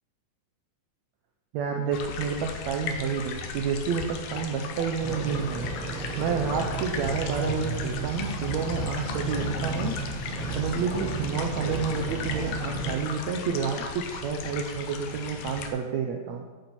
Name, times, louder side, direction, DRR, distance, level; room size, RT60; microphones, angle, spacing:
voice 1, 1.5-5.9 6.2-10.0 10.6-16.5, right 6 dB, 75° right, 2 dB, 1.6 m, -30 dB
sound 1, 1.9-15.7, left 6 dB, 75° left, 2.4 m, -37 dB
sound 2, 5.0-12.9, right 3 dB, 20° left, 1.7 m, -33 dB
11.5 x 8.9 x 4.4 m, 1.3 s
omnidirectional pair, 4.2 m